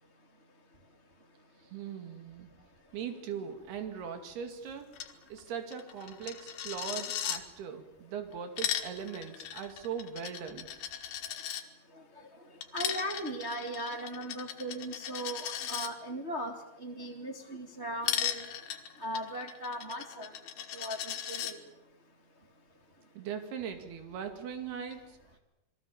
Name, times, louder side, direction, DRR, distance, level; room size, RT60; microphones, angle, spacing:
voice 1, 1.7-2.5 2.9-4.9 5.3-10.7 23.2-25.4, right 7 dB, 85° right, 6 dB, 4.3 m, -40 dB
Coin (dropping), 4.9-5.1 5.4-5.5 5.7-7.4 8.3-11.6 12.6-15.9 18.0-21.5, left 10 dB, 90° left, 3.7 m, -37 dB
voice 2, 12.7-16.5 16.8-18.5 19.0-20.3 20.7-21.0 21.3-21.6, right 1 dB, 25° right, 2 dB, 1.8 m, -38 dB
29.0 x 21.0 x 7.1 m, 0.87 s
omnidirectional pair, 4.5 m